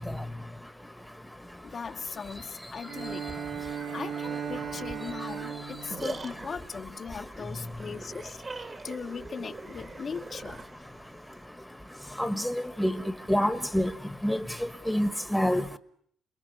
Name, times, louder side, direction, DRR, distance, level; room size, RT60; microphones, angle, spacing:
voice 1, 1.6-3.3 3.9-8.4 8.8-10.6, left 6 dB, 45° left, 0.9 m, -39 dB
Bowed string instrument, 2.8-7.3, right 7 dB, 80° right, 3.2 m, -37 dB
sound 1, 5.4-11.5, right 3 dB, 35° right, 1.8 m, -42 dB
voice 2, 12.2-13.0 13.3-13.9 14.2-14.4 14.9-15.8, equal, ahead, 1.3 m, -26 dB
28.5 x 21.5 x 6.9 m
cardioid pair, 90°, 0 cm